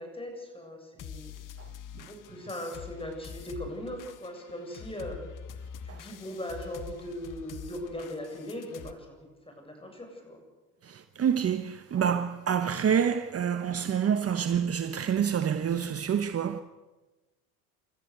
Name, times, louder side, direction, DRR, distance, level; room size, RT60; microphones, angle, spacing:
voice 1, 0.0-1.3 2.1-5.2 5.8-9.2 9.5-10.4, equal, 15° left, 7.7 m, -39 dB
sound 1, 1.0-8.9, left 7 dB, 50° left, 1.7 m, -45 dB
voice 2, 10.8-16.6, right 8 dB, 35° right, 1.2 m, -27 dB
28.5 x 13.5 x 8.2 m
supercardioid pair, 85°, 41 cm